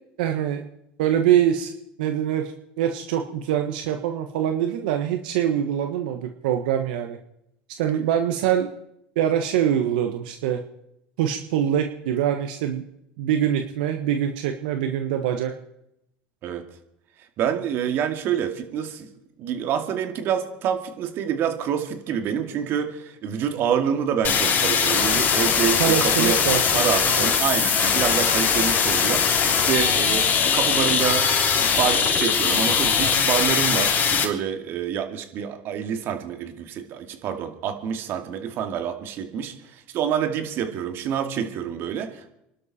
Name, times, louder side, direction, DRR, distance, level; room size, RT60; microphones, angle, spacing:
voice 1, 0.2-0.6 1.0-1.7 2.0-7.2 7.8-8.7 9.1-10.6 11.2-12.8 13.2-15.5 25.8-26.8 27.2-27.3, right 10 dB, 85° right, 5 dB, 1.4 m, -24 dB
voice 2, 17.4-19.1 19.4-26.4 26.7-42.3, right 8 dB, 55° right, 6 dB, 2.5 m, -27 dB
sound 1, 24.2-34.2, left 6 dB, 40° left, 3.2 m, -21 dB
27.0 x 12.0 x 4.4 m, 0.81 s
supercardioid pair, 105°, 5 cm